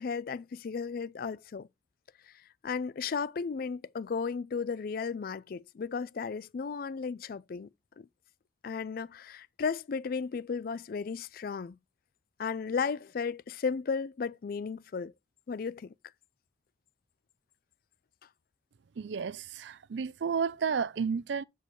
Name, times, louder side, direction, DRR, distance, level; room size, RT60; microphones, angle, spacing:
voice 1, 0.0-1.7 2.6-7.7 8.0-8.1 8.6-11.8 12.4-15.1 15.5-15.9, left 5 dB, 50° left, 0.3 m, -34 dB
voice 2, 19.0-21.4, right 6 dB, 65° right, 0.4 m, -32 dB
8.0 x 4.6 x 4.4 m
head